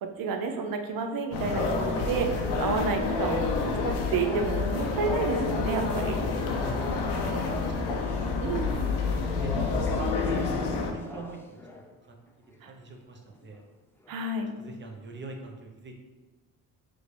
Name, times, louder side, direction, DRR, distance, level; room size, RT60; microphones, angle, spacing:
voice 1, 0.0-3.4 3.8-6.2 8.4-8.7 12.6-12.7 14.1-14.5, right 5 dB, 60° right, 5 dB, 0.7 m, -30 dB
sound 1, 1.3-10.9, left 4 dB, 80° left, 0.7 m, -28 dB
sound 2, 1.6-11.9 12.5-12.7 13.3-13.6 14.0-14.3, left 2 dB, 5° left, 0.4 m, -42 dB
voice 2, 7.1-8.3 9.0-10.2 10.6-11.6 12.1-12.2 12.7-13.6 14.6-15.9, right 3 dB, 30° right, 2 dB, 0.8 m, -45 dB
4.9 x 2.6 x 3.2 m, 1.3 s
cardioid pair, 85°, 39 cm